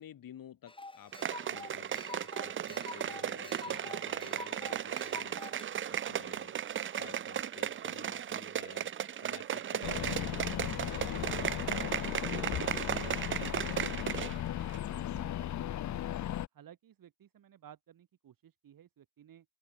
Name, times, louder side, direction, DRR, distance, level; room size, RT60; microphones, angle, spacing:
voice 1, 0.0-6.6 7.0-8.9 9.2-13.8, left 10 dB, 90° left, 8.0 m, -53 dB
sound 1, 0.7-5.7, left 2 dB, 15° left, 2.8 m, -47 dB
sound 2, 1.1-14.4 14.7-14.8, right 9 dB, 40° right, 0.4 m, -36 dB
sound 3, 9.8-16.5, left 12 dB, 60° left, 0.6 m, -36 dB
voice 2, 14.8-16.1 16.5-19.5, right 10 dB, 85° right, 7.4 m, -57 dB
open air
wide cardioid pair, 140°, 33 cm